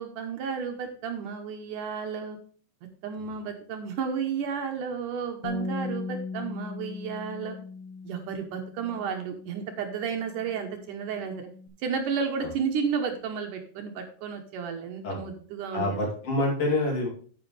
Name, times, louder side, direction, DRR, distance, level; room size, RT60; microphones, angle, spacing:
voice 1, 0.0-2.4 3.0-7.6 8.0-11.5 11.8-16.0, right 6 dB, 70° right, 4 dB, 2.3 m, -32 dB
Bass guitar, 5.4-11.7, left 3 dB, 65° left, 1.8 m, -39 dB
voice 2, 15.7-17.1, left 2 dB, 40° left, -1 dB, 3.6 m, -27 dB
9.4 x 8.7 x 3.3 m, 0.44 s
omnidirectional pair, 4.3 m